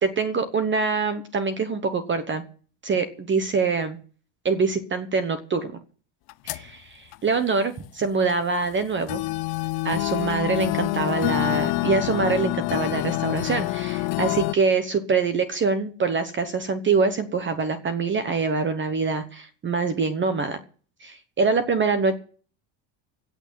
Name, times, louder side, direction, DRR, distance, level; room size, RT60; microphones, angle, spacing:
voice 1, 0.0-2.4 2.8-4.0 4.4-5.7 6.4-9.2 9.8-20.6 21.0-22.2, right 4 dB, 25° right, 10 dB, 1.1 m, -24 dB
sound 1, 6.3-6.7 7.1-7.2 8.3-8.4 9.1-14.5, left 19 dB, 55° left, 0.7 m, -26 dB
17.0 x 6.2 x 8.8 m, 0.42 s
cardioid pair, 160°, 45 cm